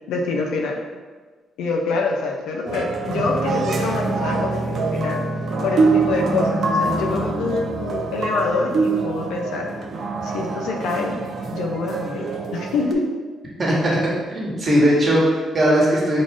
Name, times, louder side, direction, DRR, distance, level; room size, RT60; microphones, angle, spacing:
voice 1, 0.1-0.8 1.6-5.2 5.6-9.7 10.2-11.2 11.5-13.0, left 3 dB, 85° left, 1 dB, 0.5 m, -25 dB
sound 1, 2.7-12.9, right 3 dB, 55° right, 0.4 m, -24 dB
voice 2, 13.6-16.2, equal, 40° right, -4 dB, 1.2 m, -19 dB
3.7 x 2.5 x 3.6 m, 1.4 s
cardioid pair, 90°, 0 cm